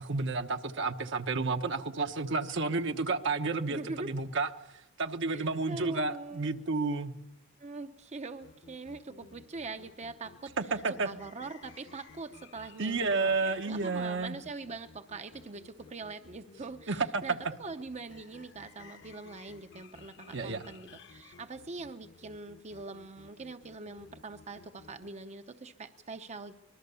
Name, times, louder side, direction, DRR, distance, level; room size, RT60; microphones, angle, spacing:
voice 1, 0.0-4.5 5.0-7.1 10.6-11.1 12.8-14.4 16.9-17.4 20.3-20.6, right 3 dB, 65° right, 7 dB, 1.1 m, -31 dB
voice 2, 3.7-4.1 5.3-6.6 7.6-10.5 10.9-26.5, right 3 dB, 35° right, 8 dB, 0.7 m, -43 dB
sound 1, 8.4-25.1, left 4 dB, 60° left, 1.2 m, -55 dB
24.5 x 20.5 x 6.9 m, 0.91 s
head